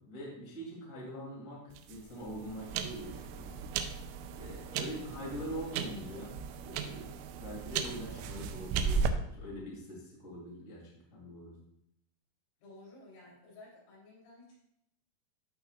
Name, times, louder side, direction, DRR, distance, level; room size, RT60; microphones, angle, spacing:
voice 1, 0.0-3.5 4.4-6.3 6.6-10.8 11.1-11.5, equal, 20° left, -5 dB, 2.2 m, -43 dB
sound 1, 1.7-9.1, right 6 dB, 85° right, 3.1 m, -36 dB
voice 2, 12.6-14.6, left 2 dB, 85° left, -6 dB, 6.2 m, -54 dB
15.0 x 5.6 x 2.4 m, 0.74 s
omnidirectional pair, 5.8 m